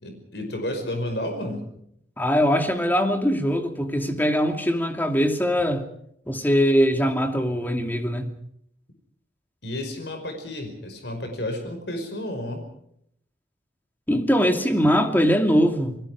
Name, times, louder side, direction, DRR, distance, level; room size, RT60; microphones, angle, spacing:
voice 1, 0.0-1.6 9.6-12.6, left 1 dB, 70° left, 5.3 m, -31 dB
voice 2, 2.2-5.9 6.3-8.3 14.1-16.1, equal, 10° left, 2.6 m, -22 dB
29.0 x 21.0 x 5.0 m
head